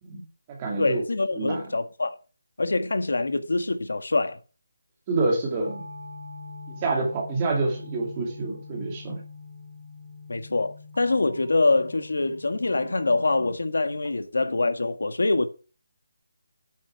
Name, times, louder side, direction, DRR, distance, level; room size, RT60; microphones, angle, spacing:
voice 1, 0.0-1.0 1.3-1.7 5.1-5.8 6.7-9.2, right 3 dB, 15° right, 2.2 m, -27 dB
voice 2, 0.8-2.2 2.6-4.4 10.3-15.5, left 3 dB, 75° left, 1.7 m, -25 dB
sound 1, 5.6-13.6, left 2 dB, 40° right, 2.7 m, -43 dB
8.7 x 6.6 x 5.8 m
figure-of-eight pair, 175°, 0 cm